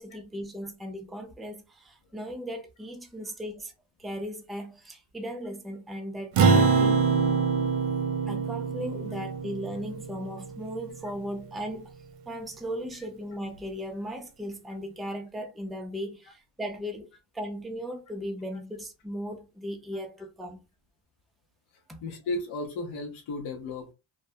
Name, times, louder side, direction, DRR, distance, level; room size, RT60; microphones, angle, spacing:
voice 1, 0.0-3.7 4.0-7.0 8.3-11.9 12.3-17.1 17.3-20.6 21.9-22.0, equal, ahead, 0.3 m, -37 dB
Acoustic guitar, 6.4-11.0, right 5 dB, 80° right, 0.7 m, -25 dB
voice 2, 22.0-23.9, left 2 dB, 70° left, 0.8 m, -35 dB
2.2 x 2.2 x 2.7 m
cardioid pair, 90°, 50 cm